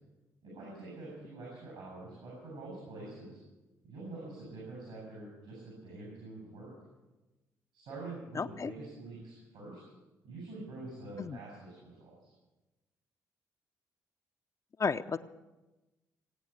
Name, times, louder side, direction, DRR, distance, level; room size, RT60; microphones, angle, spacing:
voice 1, 0.4-3.4 3.8-6.7 7.7-9.8 10.2-12.3, right 2 dB, 75° right, -3 dB, 6.7 m, -46 dB
voice 2, 8.3-8.7 11.2-11.4 14.8-15.2, left 5 dB, 40° left, 9 dB, 0.7 m, -32 dB
17.5 x 9.1 x 8.2 m, 1.1 s
hypercardioid pair, 40°, 8 cm